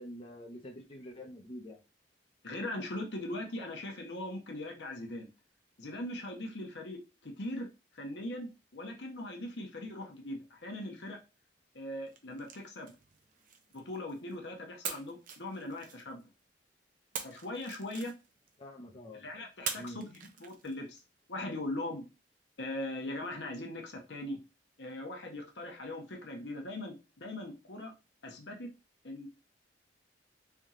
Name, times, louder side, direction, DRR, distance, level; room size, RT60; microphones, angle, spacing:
voice 1, 0.0-1.8 18.6-19.2 19.7-20.0, left 1 dB, 30° left, 0 dB, 0.8 m, -46 dB
voice 2, 2.4-5.3 5.8-7.7 7.9-11.2 11.7-12.9 13.7-16.3 17.2-18.1 19.1-21.0 21.3-22.0 22.6-24.4 24.8-27.9 28.2-28.7 29.0-29.3, left 1 dB, 70° left, 2 dB, 1.0 m, -40 dB
sound 1, 12.1-14.3 14.8-16.4 17.1-18.6 19.6-21.0, right 7 dB, 50° right, 0.7 m, -44 dB
3.5 x 2.9 x 3.7 m, 0.28 s
head